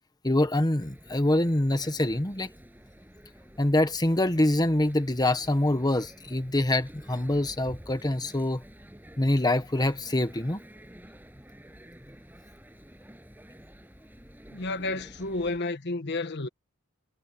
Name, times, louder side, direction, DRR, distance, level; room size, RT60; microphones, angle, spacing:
voice 1, 0.2-2.5 3.6-8.6 9.2-10.6, left 1 dB, 20° left, 1.2 m, -25 dB
sound 1, 0.8-15.6, equal, 10° right, 7.9 m, -50 dB
voice 2, 14.5-16.5, left 2 dB, 55° left, 1.3 m, -31 dB
head